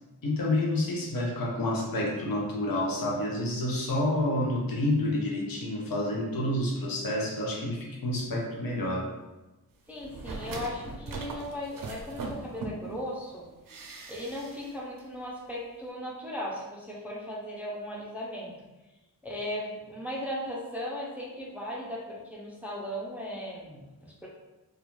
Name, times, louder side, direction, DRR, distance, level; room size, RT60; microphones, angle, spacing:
voice 1, 0.2-9.1, left 1 dB, 70° left, -2 dB, 0.6 m, -29 dB
voice 2, 9.9-13.5 14.1-18.5 19.2-24.3, equal, 5° right, -3 dB, 0.4 m, -37 dB
sound 1, 10.0-13.0 13.7-14.7 15.0-15.1, right 3 dB, 65° right, 0.5 m, -39 dB
2.3 x 2.2 x 3.0 m, 1.1 s
wide cardioid pair, 100°, 36 cm